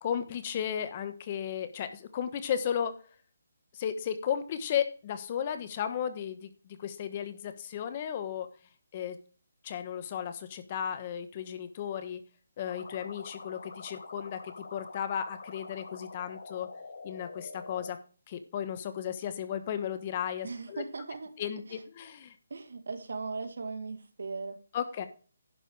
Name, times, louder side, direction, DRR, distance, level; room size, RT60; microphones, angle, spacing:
voice 1, 0.0-3.0 3.7-8.5 8.9-9.2 9.6-12.2 12.6-16.7 17.0-18.0 18.3-20.8 21.4-22.3 24.7-25.1, left 9 dB, 30° left, 1.2 m, -34 dB
sound 1, 12.6-17.9, left 3 dB, 65° left, 4.3 m, -46 dB
voice 2, 20.4-21.3 21.7-21.8 22.5-24.6, right 4 dB, 70° right, 2.2 m, -38 dB
11.0 x 6.7 x 4.8 m
hypercardioid pair, 160°, 0 cm